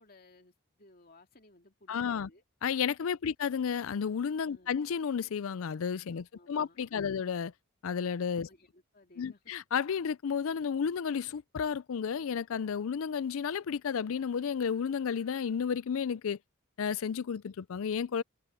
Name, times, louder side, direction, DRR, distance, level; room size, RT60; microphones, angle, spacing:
voice 1, 0.0-2.4 4.4-4.8 6.1-7.2 8.5-9.5, left 2 dB, 40° left, 2.5 m, -60 dB
voice 2, 1.9-2.3 2.6-7.5 7.8-8.5 9.2-16.4 16.8-18.2, left 7 dB, 65° left, 0.4 m, -32 dB
head